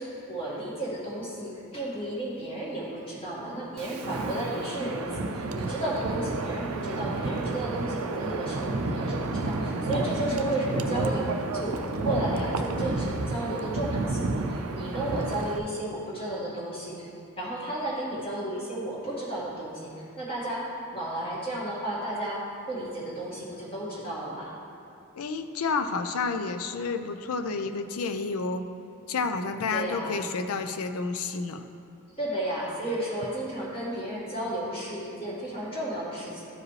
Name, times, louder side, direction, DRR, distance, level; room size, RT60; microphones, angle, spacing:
voice 1, 0.0-17.0 17.4-24.5 29.7-30.2 32.2-36.4, right 1 dB, 25° left, -7 dB, 1.9 m, -33 dB
Wind, 3.8-15.6, right 2 dB, 75° right, 0.5 m, -31 dB
voice 2, 25.1-28.6 29.1-31.6, left 4 dB, 80° left, 8 dB, 0.5 m, -30 dB
13.0 x 4.8 x 3.2 m, 2.6 s
head